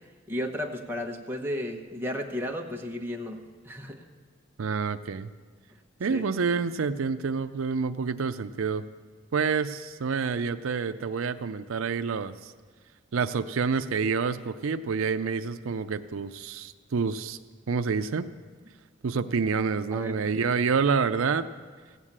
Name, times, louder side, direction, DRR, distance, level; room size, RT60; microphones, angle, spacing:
voice 1, 0.3-3.4 3.6-4.0 6.1-6.2 19.9-20.2, left 1 dB, 10° right, 1 dB, 1.0 m, -33 dB
voice 2, 4.6-5.3 6.0-8.8 9.3-12.5 13.1-17.4 17.7-18.3 19.0-21.5, right 5 dB, 85° right, 10 dB, 0.5 m, -28 dB
16.5 x 8.2 x 7.4 m, 1.5 s
head